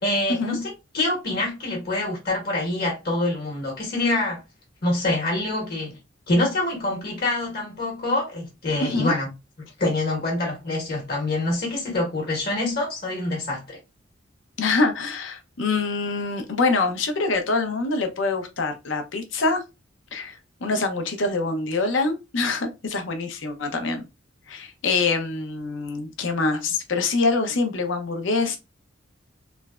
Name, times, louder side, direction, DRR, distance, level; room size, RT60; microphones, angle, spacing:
voice 1, 0.0-4.4 4.8-6.0 6.3-9.3 9.6-13.8, left 2 dB, 55° left, 1.0 m, -26 dB
voice 2, 8.8-9.1 14.6-19.6 20.1-24.1 24.5-28.6, left 3 dB, 75° left, 0.6 m, -25 dB
3.2 x 2.1 x 2.3 m
head